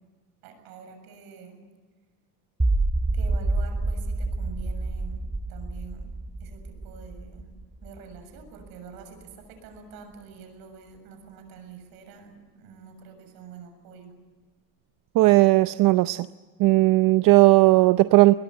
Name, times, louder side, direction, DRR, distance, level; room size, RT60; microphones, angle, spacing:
voice 1, 0.4-1.7 3.1-5.2 5.5-6.1 6.4-7.5 7.8-14.1, right 6 dB, 85° right, 6 dB, 7.3 m, -46 dB
sound 1, 2.6-8.7, right 2 dB, 10° right, 1.3 m, -28 dB
voice 2, 15.2-16.3 16.6-18.3, right 19 dB, 65° right, 13 dB, 0.7 m, -17 dB
22.5 x 21.0 x 9.7 m, 1.4 s
cardioid pair, 115°, 35 cm